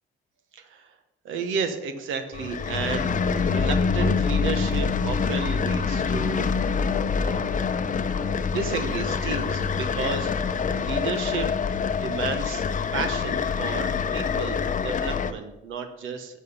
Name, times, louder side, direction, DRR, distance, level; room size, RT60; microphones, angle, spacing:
voice 1, 0.5-0.9 1.2-6.9 7.2-7.4 8.2-11.5 12.0-12.6 12.9-16.4, right 5 dB, 85° right, 7 dB, 1.2 m, -32 dB
sound 1, 2.3-15.3, left 5 dB, 40° left, 0.7 m, -25 dB
10.5 x 6.6 x 5.5 m, 0.98 s
cardioid pair, 90°, 20 cm